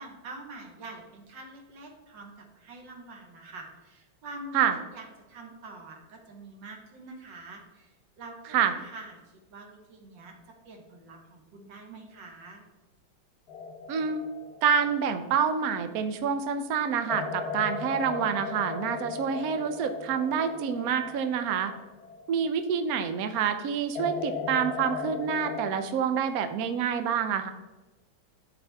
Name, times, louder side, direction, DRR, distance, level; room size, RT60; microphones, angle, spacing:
voice 1, 0.0-12.6, right 2 dB, 65° right, 1 dB, 1.8 m, -46 dB
sound 1, 13.5-16.2 17.1-22.9 24.0-25.7, left 5 dB, 60° left, 1.1 m, -37 dB
voice 2, 13.9-14.2 14.6-21.7 22.3-27.5, right 7 dB, 80° right, 8 dB, 0.8 m, -27 dB
12.0 x 4.3 x 3.4 m, 1.1 s
omnidirectional pair, 2.2 m